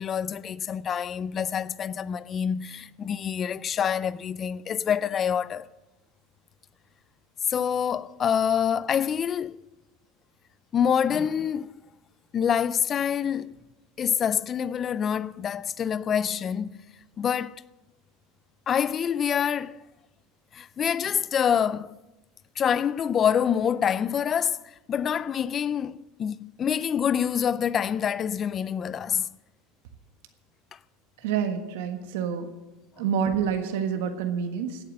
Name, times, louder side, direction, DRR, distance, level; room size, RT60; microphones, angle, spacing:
voice 1, 0.0-5.7 7.5-9.6 10.7-11.8 12.3-13.5 14.0-16.8 17.2-17.6 18.7-19.8 20.5-22.0 22.6-29.4 30.7-30.8, left 8 dB, 30° left, 0.4 m, -26 dB
voice 2, 31.2-32.5 33.0-34.8, right 7 dB, 80° right, 1.5 m, -27 dB
16.5 x 8.7 x 6.4 m
supercardioid pair, 140°, 0 cm